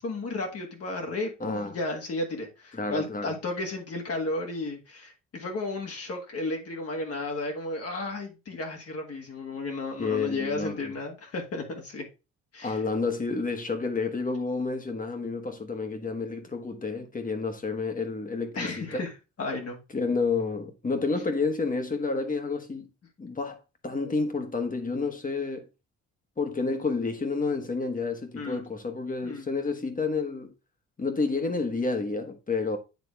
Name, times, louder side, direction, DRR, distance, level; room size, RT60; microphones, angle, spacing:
voice 1, 0.0-12.1 12.5-12.8 18.6-19.1 19.4-19.8 28.4-28.6 29.2-29.5, left 2 dB, 50° left, 1.8 m, -33 dB
voice 2, 1.4-1.8 2.7-3.3 10.0-10.8 12.6-19.0 19.9-22.9 23.2-25.7 26.4-30.5 31.0-32.8, left 4 dB, 25° left, 1.4 m, -30 dB
9.1 x 3.6 x 3.3 m
cardioid pair, 90°, 30 cm